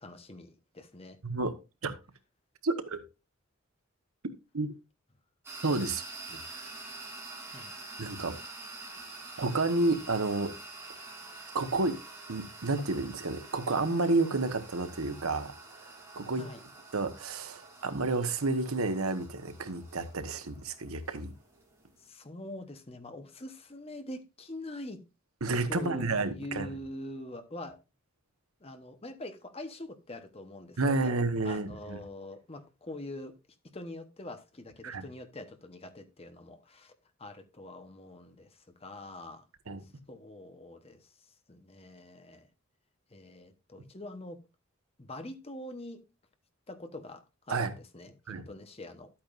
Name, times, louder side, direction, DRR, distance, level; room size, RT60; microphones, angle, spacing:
voice 1, 0.0-1.2 7.5-7.8 16.4-16.6 22.0-25.0 25.7-27.8 28.6-31.1 31.4-33.4 33.7-36.9 37.2-39.4 39.8-41.1 41.5-42.5 43.1-44.4 45.0-46.0 46.7-49.1, left 1 dB, 30° left, 1.0 m, -44 dB
voice 2, 1.2-1.5 1.8-1.9 2.6-3.0 4.5-4.7 5.6-6.7 8.0-8.4 9.4-10.5 11.5-12.0 12.3-15.5 15.8-15.9 16.1-16.4 16.9-21.3 25.4-26.7 30.8-32.0 34.8-35.0 39.7-39.8 47.5-47.7 48.3-48.4, right 3 dB, 90° right, 1.2 m, -30 dB
sound 1, 5.4-22.1, right 3 dB, 10° right, 3.0 m, -47 dB
12.0 x 8.6 x 2.5 m
head